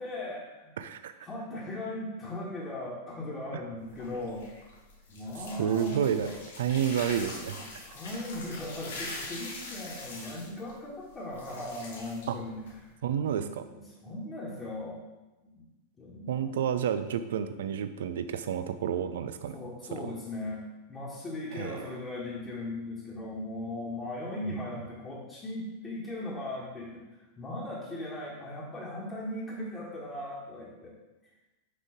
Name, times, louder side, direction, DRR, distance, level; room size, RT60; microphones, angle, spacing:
voice 1, 0.0-0.8 1.2-4.5 5.1-6.8 7.5-12.9 13.3-15.0 15.4-15.6 16.0-16.5 19.5-20.6 20.9-27.0 27.4-30.9, left 1 dB, 20° left, -7 dB, 1.6 m, -38 dB
voice 2, 0.8-1.1 5.6-6.3 6.6-7.6 12.3-12.4 13.0-13.6 16.3-19.6 21.5-21.9, right 9 dB, 60° right, 10 dB, 0.4 m, -30 dB
sound 1, 3.8-12.9, left 2 dB, 60° left, 1.3 m, -43 dB
6.7 x 5.2 x 3.7 m, 1.1 s
figure-of-eight pair, 90°, 0 cm